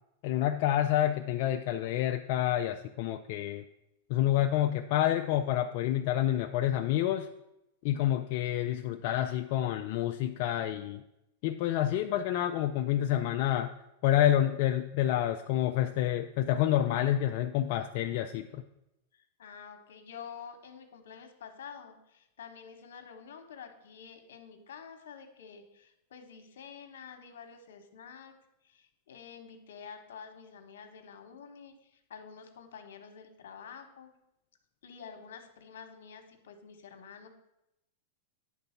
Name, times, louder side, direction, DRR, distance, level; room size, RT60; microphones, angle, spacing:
voice 1, 0.2-3.6 4.1-7.3 7.8-11.0 11.4-13.7 14.0-18.6, left 12 dB, 55° left, 5 dB, 0.4 m, -28 dB
voice 2, 19.1-28.3 28.6-34.1 34.8-37.3, left 6 dB, 80° left, 6 dB, 1.2 m, -49 dB
9.2 x 3.9 x 5.7 m, 0.87 s
hypercardioid pair, 130°, 0 cm